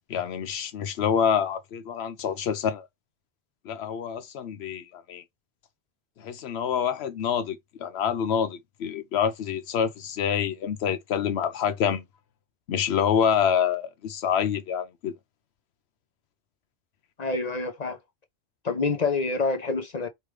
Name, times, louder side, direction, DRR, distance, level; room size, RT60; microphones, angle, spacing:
voice 1, 0.1-2.9 3.6-5.2 6.2-12.0 12.7-15.1, left 8 dB, 85° left, 0.9 m, -27 dB
voice 2, 17.2-18.0 18.6-20.1, left 3 dB, 45° left, 0.7 m, -27 dB
4.9 x 3.1 x 3.1 m
omnidirectional pair, 1.1 m